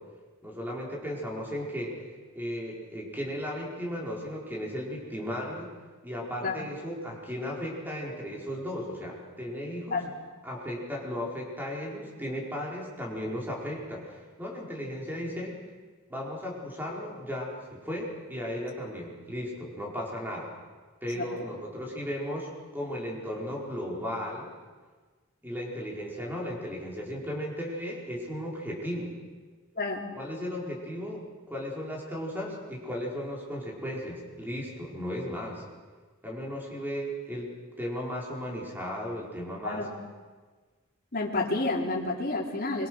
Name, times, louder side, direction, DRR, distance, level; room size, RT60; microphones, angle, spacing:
voice 1, 0.4-2.0 2.3-5.7 6.0-10.0 10.4-15.6 16.1-20.5 21.0-24.5 25.4-29.1 30.1-35.6 36.2-37.5 37.8-39.9, equal, 10° right, -2 dB, 4.9 m, -35 dB
voice 2, 41.1-42.9, left 3 dB, 45° left, -3 dB, 3.7 m, -29 dB
26.0 x 23.5 x 6.4 m, 1.4 s
head